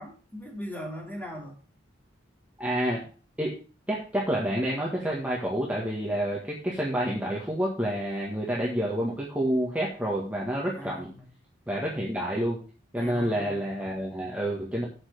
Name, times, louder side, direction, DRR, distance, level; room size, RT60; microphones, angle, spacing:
voice 1, 0.0-1.6 10.6-11.3 13.0-13.7, equal, 10° left, -1 dB, 2.8 m, -40 dB
voice 2, 2.6-3.0 3.4-3.5 3.9-11.1 11.7-12.6 12.9-14.9, equal, 5° right, -4 dB, 1.6 m, -28 dB
8.0 x 5.8 x 6.6 m, 0.38 s
head